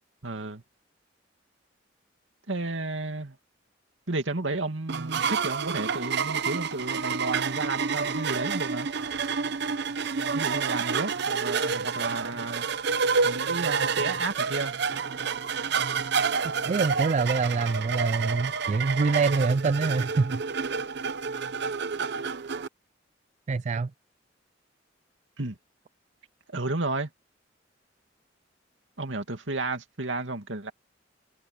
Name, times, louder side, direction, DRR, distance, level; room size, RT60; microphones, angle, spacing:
voice 1, 0.2-0.6 2.5-3.4 4.1-8.9 10.3-12.7 13.2-14.8 25.4-25.6 26.5-27.1 29.0-30.7, right 2 dB, 80° right, 2.4 m, -32 dB
sound 1, 4.9-22.7, right 5 dB, 60° right, 0.7 m, -29 dB
voice 2, 16.7-20.4 23.5-23.9, right 4 dB, 40° right, 0.3 m, -25 dB
head